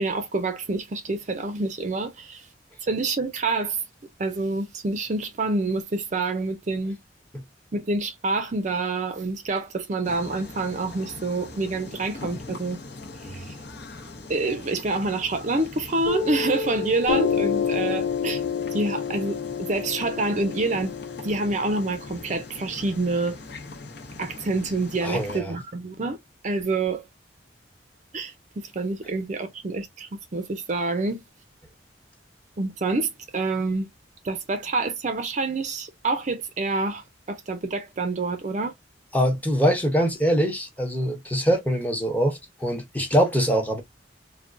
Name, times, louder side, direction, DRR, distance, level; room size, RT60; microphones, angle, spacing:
voice 1, 0.0-2.5 2.8-3.8 4.2-7.0 7.7-12.8 13.2-13.6 14.3-18.4 18.7-20.9 21.2-23.4 24.2-26.2 26.4-27.1 28.1-31.2 32.6-33.9 34.2-38.7, right 3 dB, 40° right, 0.5 m, -27 dB
sound 1, 10.0-25.4, left 2 dB, 60° left, 0.8 m, -41 dB
Piano, 16.1-23.1, left 7 dB, 75° left, 0.4 m, -29 dB
voice 2, 25.0-25.5 39.1-43.8, equal, 10° left, 0.8 m, -23 dB
3.6 x 2.2 x 2.5 m
head